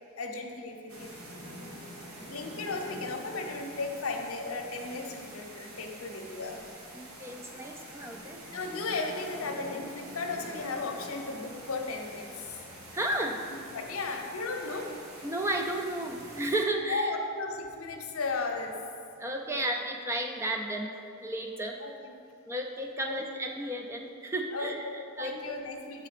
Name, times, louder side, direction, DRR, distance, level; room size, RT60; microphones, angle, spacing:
voice 1, 0.2-1.1 2.2-6.6 8.5-12.6 13.5-14.9 16.9-18.7 19.5-19.6 21.8-22.1 23.0-23.2 24.5-26.1, left 3 dB, 80° left, 2 dB, 0.7 m, -35 dB
sound 1, 0.9-16.6, right 1 dB, 80° right, 1.2 m, -46 dB
voice 2, 6.9-8.4 12.9-13.4 15.2-17.2 19.2-21.8 22.5-24.9 25.2-25.6, right 1 dB, 10° right, 3 dB, 0.3 m, -33 dB
7.4 x 3.8 x 4.9 m, 2.6 s
head